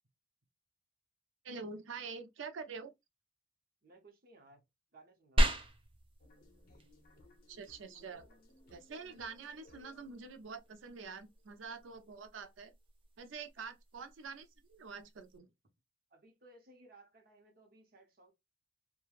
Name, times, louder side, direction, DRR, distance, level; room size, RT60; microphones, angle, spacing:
voice 1, 1.4-2.9 7.5-8.2 8.7-12.7 13.2-15.5, right 5 dB, 90° right, 0.5 m, -46 dB
voice 2, 3.8-4.6 4.9-5.5 13.6-13.7 16.1-18.3, right 2 dB, 50° right, 0.9 m, -60 dB
sound 1, 5.4-15.4, equal, 30° right, 0.4 m, -39 dB
sound 2, 6.2-12.0, left 2 dB, 50° left, 0.6 m, -64 dB
3.1 x 2.2 x 2.4 m
head